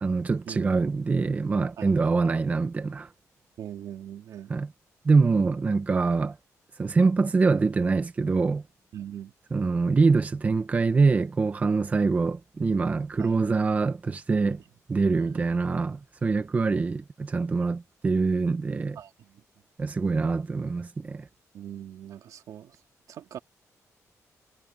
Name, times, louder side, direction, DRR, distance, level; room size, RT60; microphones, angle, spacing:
voice 1, 0.0-3.1 4.5-4.7 5.0-6.4 6.8-8.6 9.5-14.6 14.9-19.0 19.8-21.3, right 4 dB, 25° right, 0.9 m, -24 dB
voice 2, 1.8-2.1 3.6-4.5 8.9-9.3 13.2-13.3 14.3-14.6 15.2-15.5 19.0-19.4 21.5-22.8 23.1-23.4, right 10 dB, 80° right, 2.6 m, -41 dB
wide cardioid pair, 160°, 6 cm